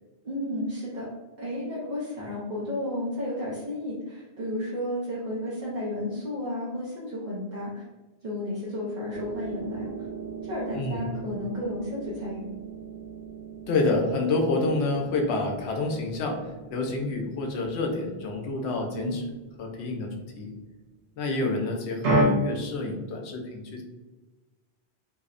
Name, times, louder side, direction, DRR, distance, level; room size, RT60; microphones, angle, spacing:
voice 1, 0.2-1.1 1.4-7.8 8.2-10.1 10.4-12.5 18.9-19.2, left 1 dB, 50° right, -6 dB, 0.6 m, -32 dB
sound 1, 9.1-20.6 22.0-22.2, right 3 dB, 90° right, 1.1 m, -35 dB
voice 2, 13.7-19.2 19.6-20.5 21.2-23.8, left 2 dB, 80° left, 2 dB, 0.8 m, -28 dB
2.7 x 2.0 x 2.4 m, 1.2 s
omnidirectional pair, 1.1 m